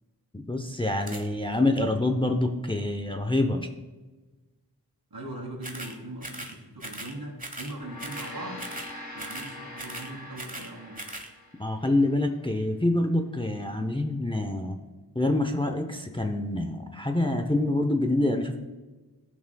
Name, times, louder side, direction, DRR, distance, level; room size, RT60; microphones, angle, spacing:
voice 1, 0.3-3.7 11.6-14.8 15.1-18.6, left 2 dB, 15° left, 5 dB, 0.7 m, -26 dB
sound 1, 1.0-1.3 5.6-6.0 6.2-6.5 6.8-7.1 7.4-7.7 8.0-8.3 8.6-8.9 9.2-9.5 9.8-10.7 11.0-11.3, right 1 dB, 20° right, 1.2 m, -39 dB
voice 2, 5.1-8.7 9.1-11.0, right 1 dB, 65° right, -2 dB, 2.9 m, -40 dB
Gong, 7.6-12.2, left 1 dB, 65° left, 1.4 m, -43 dB
14.5 x 6.2 x 2.3 m, 1.2 s
wide cardioid pair, 50°, 39 cm